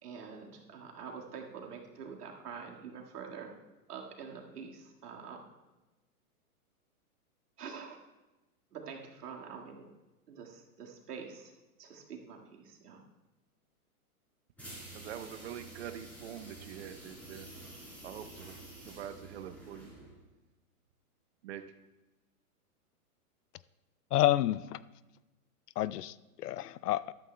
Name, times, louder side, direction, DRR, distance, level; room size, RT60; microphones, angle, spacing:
voice 1, 0.0-3.5 3.9-5.4 7.6-8.0 8.7-9.8 10.3-11.5 11.8-12.4 12.6-13.0, right 6 dB, 85° right, 0 dB, 2.0 m, -46 dB
sound 1, 14.6-20.2, right 2 dB, 5° left, 3.9 m, -49 dB
voice 2, 14.9-17.5 18.0-18.5 18.8-20.0 21.4-21.6, right 10 dB, 45° right, 10 dB, 0.7 m, -44 dB
voice 3, 24.1-24.8 25.8-27.1, left 14 dB, 85° left, 18 dB, 0.5 m, -29 dB
13.5 x 11.5 x 2.2 m, 1.1 s
hypercardioid pair, 155°, 45 cm